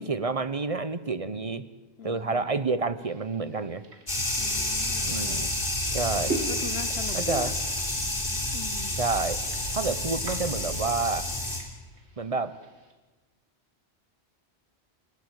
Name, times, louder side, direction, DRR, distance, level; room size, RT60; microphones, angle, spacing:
voice 1, 0.0-1.6 2.0-3.8 5.0-5.5 5.9-6.3 7.1-7.5 8.9-9.4 9.7-11.3 12.2-12.5, right 4 dB, 35° right, 13 dB, 0.9 m, -29 dB
voice 2, 2.0-2.4 4.4-5.6 6.2-7.5 8.5-9.0, left 5 dB, 65° left, 11 dB, 1.3 m, -41 dB
sound 1, 3.0-12.9, right 3 dB, 75° right, 2.5 m, -42 dB
sound 2, 4.1-11.6, left 1 dB, 50° left, 3.5 m, -29 dB
28.5 x 13.0 x 8.2 m, 1.2 s
omnidirectional pair, 1.1 m